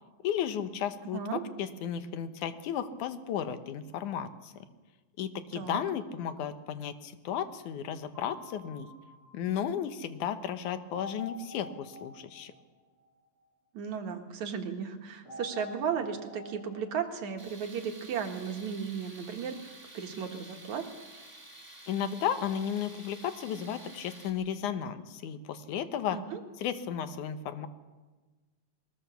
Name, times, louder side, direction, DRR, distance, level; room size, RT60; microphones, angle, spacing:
voice 1, 0.2-1.2 1.6-4.5 5.2-8.9 9.3-12.5 21.9-26.2 26.6-27.7, left 9 dB, 65° left, 10 dB, 2.3 m, -34 dB
voice 2, 1.0-1.4 5.5-5.8 13.7-20.9 26.1-26.4, right 7 dB, 60° right, 4 dB, 2.6 m, -35 dB
sound 1, 8.1-9.9 10.9-13.4 15.3-17.4, left 2 dB, 35° right, 5.4 m, -48 dB
Tools, 17.4-24.3, right 2 dB, 5° right, 2.7 m, -51 dB
22.0 x 19.5 x 7.0 m, 1.3 s
omnidirectional pair, 4.2 m